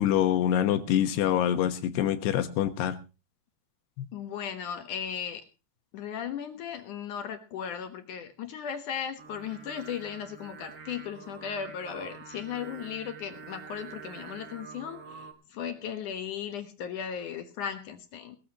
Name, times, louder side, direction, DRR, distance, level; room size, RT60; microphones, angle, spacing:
voice 1, 0.0-3.0 4.0-4.1, left 10 dB, 80° left, 10 dB, 3.3 m, -25 dB
voice 2, 4.1-5.4 5.9-18.4, left 8 dB, 60° left, 8 dB, 2.3 m, -36 dB
Singing, 9.2-15.3, right 5 dB, 40° right, 2.6 m, -46 dB
20.0 x 13.5 x 2.9 m, 0.32 s
omnidirectional pair, 4.8 m